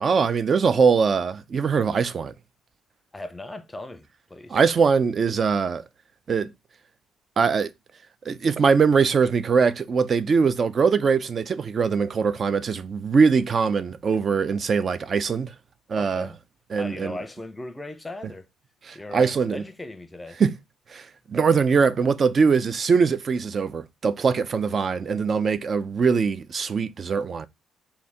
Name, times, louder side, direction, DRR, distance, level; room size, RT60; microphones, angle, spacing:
voice 1, 0.0-2.3 4.5-5.8 6.3-6.5 7.4-7.7 8.3-15.5 15.9-16.3 16.7-17.2 18.8-19.6 20.4-20.6 20.9-27.5, right 5 dB, 40° right, 0.4 m, -22 dB
voice 2, 3.1-4.6 16.0-16.4 16.7-18.5 18.9-20.4, left 2 dB, 15° left, 0.6 m, -38 dB
3.4 x 2.8 x 4.2 m
cardioid pair, 105°, 0 cm